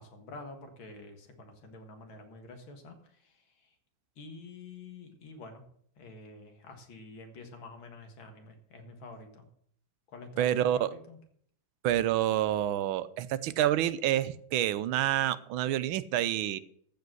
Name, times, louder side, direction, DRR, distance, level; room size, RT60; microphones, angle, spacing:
voice 1, 0.0-3.7 4.2-5.6 6.0-9.5 10.1-11.2, left 3 dB, 80° left, 6 dB, 2.5 m, -48 dB
voice 2, 10.4-10.9 11.8-16.6, right 12 dB, 85° right, 16 dB, 1.5 m, -28 dB
14.0 x 5.0 x 7.9 m, 0.64 s
omnidirectional pair, 2.2 m